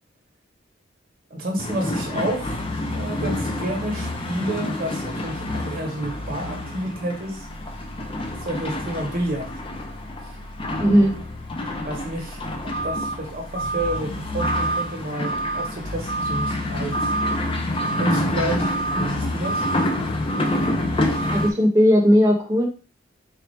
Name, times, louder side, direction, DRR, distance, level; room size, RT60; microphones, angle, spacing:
voice 1, 1.3-7.5 8.3-9.5 11.8-17.1 18.0-19.7, right 1 dB, 50° right, 1 dB, 1.0 m, -30 dB
sound 1, 1.6-21.5, left 1 dB, 30° left, 0.5 m, -27 dB
voice 2, 10.8-11.1 21.3-22.6, equal, 15° right, -4 dB, 0.8 m, -17 dB
4.4 x 2.4 x 3.1 m, 0.36 s
head